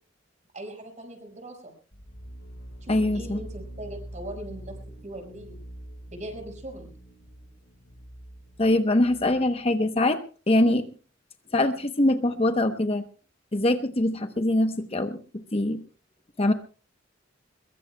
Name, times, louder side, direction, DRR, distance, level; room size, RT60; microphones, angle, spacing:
voice 1, 0.5-1.7 2.8-4.8 5.0-5.6 6.1-6.9, right 1 dB, 40° right, 5 dB, 5.4 m, -40 dB
sound 1, 1.9-9.6, right 1 dB, 70° left, 5.0 m, -43 dB
voice 2, 2.9-3.4 8.6-10.2 10.5-10.9 11.5-13.0 13.5-15.8 16.4-16.5, left 1 dB, 30° left, 8 dB, 0.9 m, -23 dB
23.0 x 22.0 x 2.2 m, 0.36 s
head